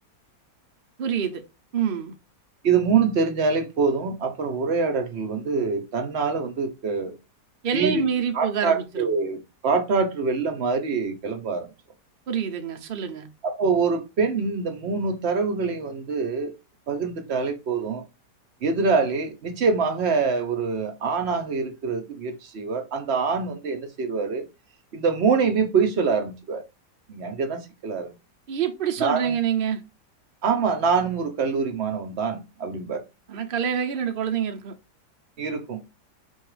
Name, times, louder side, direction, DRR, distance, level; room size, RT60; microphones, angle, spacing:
voice 1, 1.0-1.4 1.7-2.2 7.6-9.1 12.3-13.3 28.5-29.8 33.3-34.8, right 8 dB, 85° right, 0.4 m, -26 dB
voice 2, 2.6-7.2 7.7-8.0 8.3-11.7 13.4-16.5 16.9-18.0 18.6-24.5 24.9-26.6 27.1-28.1 29.0-29.3 30.4-33.0 35.4-35.8, right 5 dB, 55° right, 0.8 m, -25 dB
4.5 x 2.4 x 4.7 m
omnidirectional pair, 1.8 m